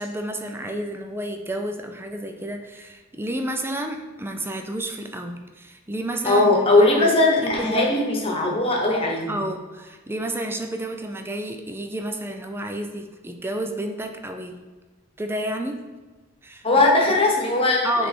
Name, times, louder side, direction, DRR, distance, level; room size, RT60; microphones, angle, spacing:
voice 1, 0.0-6.5 6.8-7.1 7.4-7.9 9.3-14.6 15.2-15.8 16.4-16.6 17.8-18.1, right 1 dB, 10° right, 4 dB, 0.4 m, -30 dB
voice 2, 6.2-9.4 16.6-18.1, left 2 dB, 25° left, -1 dB, 1.2 m, -19 dB
7.6 x 3.4 x 4.2 m, 1.3 s
head